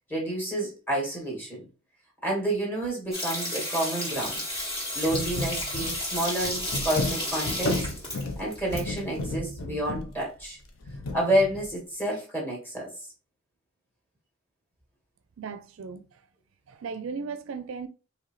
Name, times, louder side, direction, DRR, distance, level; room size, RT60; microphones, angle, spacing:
voice 1, 0.1-1.6 2.2-4.4 4.9-7.9 8.4-10.6 11.1-12.9, right 1 dB, 10° left, 1.8 m, -29 dB
sound 1, 3.1-8.8 9.1-9.2, left 1 dB, 25° left, 1.8 m, -32 dB
sound 2, 4.1-4.3 4.5-4.6 5.0-11.7, left 2 dB, 85° left, 0.7 m, -33 dB
voice 2, 15.4-16.2 16.7-17.9, right 5 dB, 70° right, 0.4 m, -36 dB
4.8 x 3.1 x 3.0 m
head